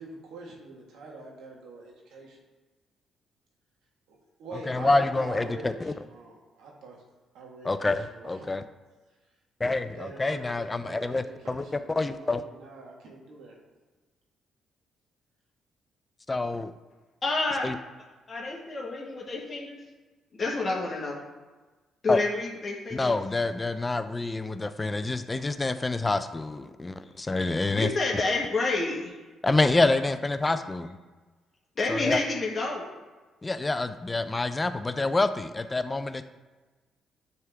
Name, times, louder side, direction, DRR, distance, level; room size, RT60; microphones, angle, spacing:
voice 1, 0.0-2.4 4.1-7.0 7.3-8.5 9.6-13.6, right 3 dB, 85° right, -1 dB, 1.7 m, -44 dB
voice 2, 4.7-5.9 7.6-8.6 9.6-12.4 16.3-16.7 17.6-17.8 22.1-22.2 22.9-27.9 29.4-31.0 31.9-32.2 33.4-36.2, left 2 dB, 20° left, 10 dB, 0.4 m, -27 dB
voice 3, 17.2-17.7 18.3-19.8 20.3-21.2 22.0-23.1 27.7-29.1 31.8-32.9, left 3 dB, 40° left, -3 dB, 1.5 m, -29 dB
9.5 x 3.6 x 3.5 m, 1.3 s
cardioid pair, 90°, 0 cm